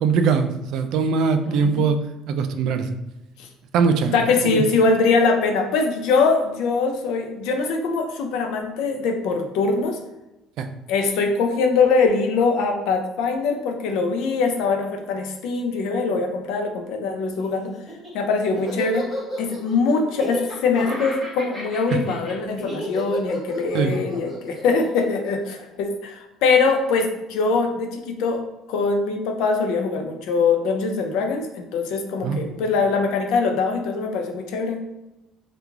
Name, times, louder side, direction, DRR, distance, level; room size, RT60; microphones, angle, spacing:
voice 1, 0.0-2.0 2.3-3.0 3.7-4.2 4.4-4.6 10.6-10.7 23.7-24.0 32.2-32.5, right 5 dB, 65° right, 8 dB, 0.3 m, -21 dB
voice 2, 1.5-1.9 3.4-3.5 4.1-10.0 10.9-17.7 18.1-19.1 19.4-28.4 28.7-34.8, left 4 dB, 75° left, 5 dB, 0.5 m, -22 dB
Laughter, 17.7-26.1, equal, 5° right, 1.3 m, -32 dB
3.0 x 2.4 x 3.5 m, 0.98 s
cardioid pair, 145°, 0 cm